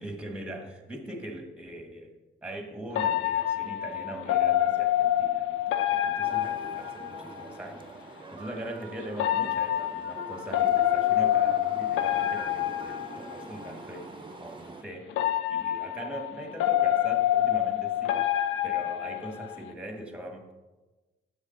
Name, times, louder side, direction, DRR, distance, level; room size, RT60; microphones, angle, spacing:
voice 1, 0.0-2.2 2.4-5.6 5.9-14.1 14.4-18.2 18.6-20.5, right 1 dB, 5° right, 3 dB, 1.3 m, -41 dB
sound 1, 3.0-7.6 9.1-13.8 15.1-19.7, left 12 dB, 85° left, 0.5 m, -27 dB
sound 2, 6.2-14.8, right 4 dB, 25° right, 0.6 m, -44 dB
7.1 x 6.4 x 3.8 m, 1.2 s
cardioid pair, 90°, 20 cm